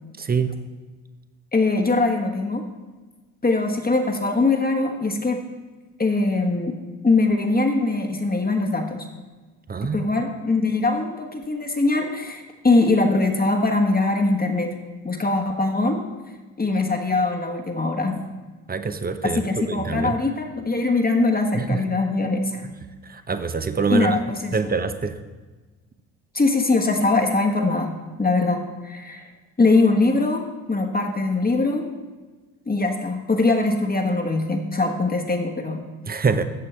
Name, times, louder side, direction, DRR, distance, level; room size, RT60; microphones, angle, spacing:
voice 1, 0.2-0.5 9.7-10.1 18.7-19.4 19.7-20.2 21.5-21.8 23.1-24.2 24.5-25.2 36.1-36.4, right 5 dB, 20° right, 10 dB, 0.8 m, -24 dB
voice 2, 1.5-2.6 3.4-5.4 6.0-6.8 7.0-9.1 9.8-14.7 15.0-16.0 16.6-18.2 19.2-22.6 23.9-24.7 26.3-29.3 29.6-31.9 32.7-35.8, left 3 dB, 20° left, 2 dB, 1.3 m, -22 dB
14.5 x 6.7 x 3.3 m, 1.3 s
hypercardioid pair, 55°, 45 cm